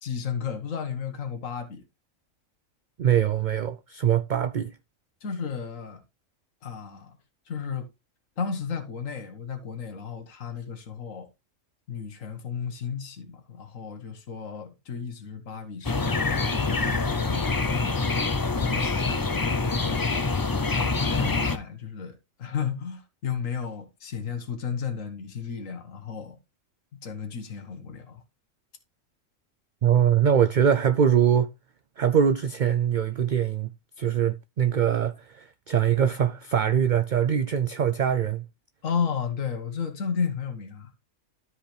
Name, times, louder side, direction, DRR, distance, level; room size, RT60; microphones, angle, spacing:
voice 1, 0.0-1.8 5.2-6.0 6.6-7.1 7.5-7.9 8.4-11.3 11.9-17.8 18.5-20.1 20.7-26.4 27.0-28.2 38.8-40.9, left 6 dB, 80° left, 1.7 m, -33 dB
voice 2, 3.0-4.7 29.8-31.5 32.0-33.7 34.0-38.4, right 9 dB, 65° right, 0.5 m, -23 dB
sound 1, 15.8-21.6, left 3 dB, 30° left, 0.4 m, -25 dB
13.0 x 4.9 x 3.3 m
omnidirectional pair, 1.4 m